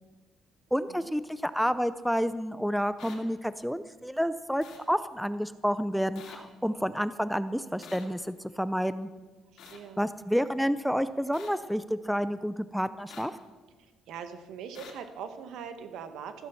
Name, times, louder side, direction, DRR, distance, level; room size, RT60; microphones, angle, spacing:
voice 1, 0.7-9.1 10.0-13.3, equal, ahead, 13 dB, 0.4 m, -29 dB
sound 1, 3.0-3.2 4.6-4.8 6.1-6.4 7.8-8.0 9.6-9.8 11.3-11.5 13.1-13.3 14.7-14.9, left 7 dB, 65° left, 2.8 m, -47 dB
voice 2, 9.6-10.0 13.8-16.5, right 7 dB, 70° right, 8 dB, 1.4 m, -42 dB
14.5 x 10.5 x 7.0 m, 1.3 s
cardioid pair, 160°, 0 cm